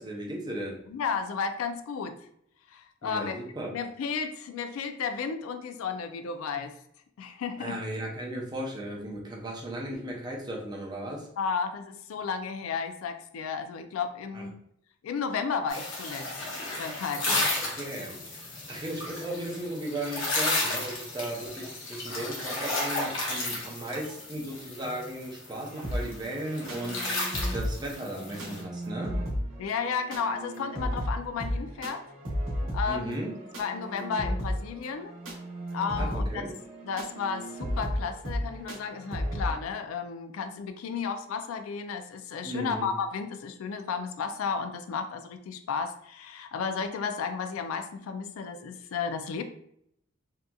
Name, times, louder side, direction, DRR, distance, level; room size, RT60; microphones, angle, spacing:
voice 1, 0.0-0.8 3.0-3.7 7.6-11.3 14.3-14.4 17.3-29.1 32.9-33.3 36.0-36.5 42.4-42.9, right 1 dB, 20° right, -2 dB, 0.5 m, -36 dB
voice 2, 0.9-2.2 2.7-3.4 3.7-6.8 7.2-7.8 11.4-14.6 15.0-16.3 16.8-17.5 29.6-32.0 32.7-33.2 33.6-35.1 35.7-36.4 36.8-49.4, left 5 dB, 90° left, 9 dB, 0.3 m, -33 dB
sound 1, 15.7-28.6, left 2 dB, 65° left, 0.8 m, -33 dB
sound 2, 25.8-39.5, equal, 75° right, 0.9 m, -34 dB
2.8 x 2.4 x 2.2 m, 0.69 s
head